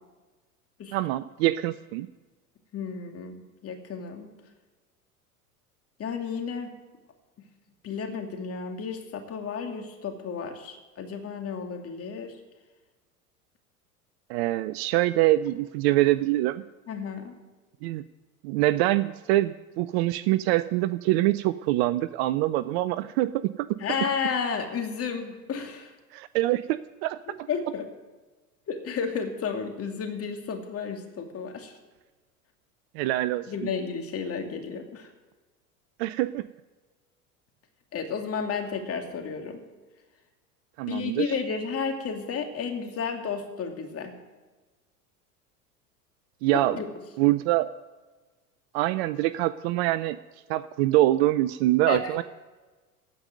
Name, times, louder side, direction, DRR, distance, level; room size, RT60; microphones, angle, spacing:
voice 1, 0.9-2.1 14.3-16.6 17.8-18.0 18.4-23.3 26.1-27.2 32.9-33.5 36.0-36.4 40.8-41.4 46.4-46.8 47.2-47.7 48.7-50.2 50.5-52.2, right 16 dB, 45° right, 16 dB, 0.5 m, -24 dB
voice 2, 2.7-4.3 6.0-6.7 7.8-12.3 16.9-17.3 23.8-25.9 27.5-27.8 28.7-31.7 33.5-35.1 37.9-39.6 40.9-44.1 46.5-46.9 51.9-52.2, left 6 dB, 30° left, 5 dB, 2.4 m, -32 dB
16.0 x 5.3 x 9.2 m, 1.3 s
figure-of-eight pair, 80°, 45 cm